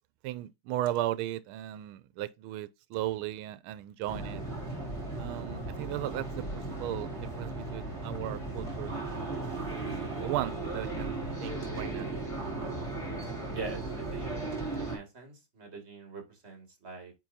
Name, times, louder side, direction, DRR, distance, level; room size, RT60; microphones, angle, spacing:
voice 1, 0.2-4.4 5.2-6.3 6.5-8.9 9.7-12.2, right 14 dB, 90° right, 1.4 m, -36 dB
sound 1, 4.1-15.0, right 2 dB, 15° left, 2.4 m, -36 dB
voice 2, 13.5-14.4 14.8-17.1, right 3 dB, 30° right, 2.5 m, -43 dB
9.2 x 3.7 x 2.7 m
omnidirectional pair, 2.3 m